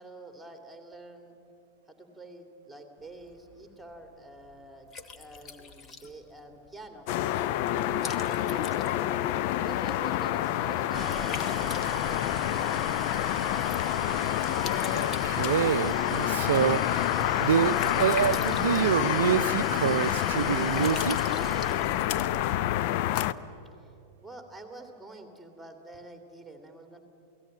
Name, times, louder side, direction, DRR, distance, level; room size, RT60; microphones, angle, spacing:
voice 1, 0.0-1.3 1.9-7.5 8.0-8.9 9.6-13.0 24.2-27.0, right 2 dB, ahead, 5 dB, 2.7 m, -47 dB
Liquid, 3.0-22.4, left 5 dB, 25° left, 1.5 m, -46 dB
sound 1, 7.1-23.3, left 13 dB, 45° left, 0.6 m, -28 dB
sound 2, 10.9-22.4, right 6 dB, 20° right, 0.8 m, -41 dB
voice 2, 14.8-17.1 17.4-21.2, right 9 dB, 60° right, 16 dB, 0.5 m, -27 dB
28.5 x 18.5 x 8.8 m, 2.8 s
figure-of-eight pair, 90°, 0 cm